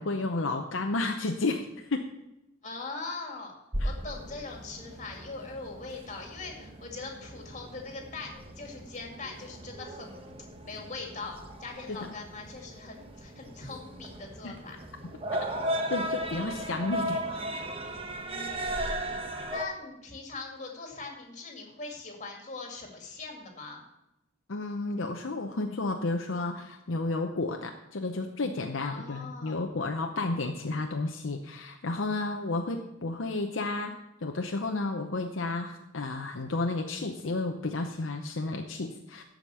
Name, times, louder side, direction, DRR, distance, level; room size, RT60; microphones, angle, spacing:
voice 1, 0.0-2.0 3.8-3.9 11.9-12.1 14.4-14.5 15.9-17.2 24.5-33.9 34.2-39.2, left 2 dB, 70° left, 4 dB, 0.7 m, -32 dB
voice 2, 2.6-3.5 3.8-10.2 10.6-14.8 16.0-16.1 18.2-18.7 19.5-23.8 28.8-29.6, left 3 dB, 35° left, 1 dB, 2.2 m, -41 dB
sound 1, 3.7-19.7, equal, 30° right, 1.0 m, -37 dB
13.5 x 5.2 x 7.0 m, 0.91 s
head